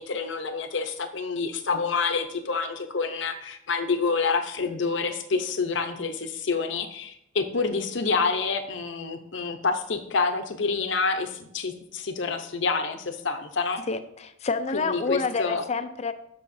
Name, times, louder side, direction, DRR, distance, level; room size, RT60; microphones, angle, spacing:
voice 1, 0.0-13.8 14.7-15.6, left 4 dB, 65° left, 7 dB, 0.8 m, -28 dB
voice 2, 13.9-16.1, left 4 dB, 35° left, 11 dB, 0.4 m, -28 dB
12.5 x 5.7 x 2.7 m, 0.74 s
head